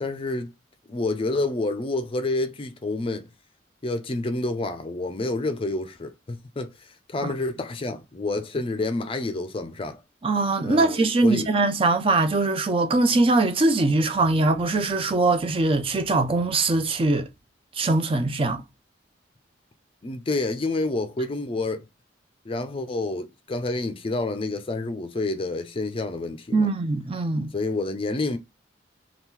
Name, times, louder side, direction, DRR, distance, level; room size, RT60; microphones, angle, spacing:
voice 1, 0.0-0.5 0.9-3.3 3.8-6.7 7.1-10.0 10.6-11.5 20.0-21.9 22.5-26.7 27.5-28.4, left 2 dB, 30° left, 0.4 m, -28 dB
voice 2, 10.2-17.3 17.8-18.6 26.5-27.5, right 2 dB, 30° right, 0.4 m, -22 dB
2.9 x 2.4 x 3.6 m
head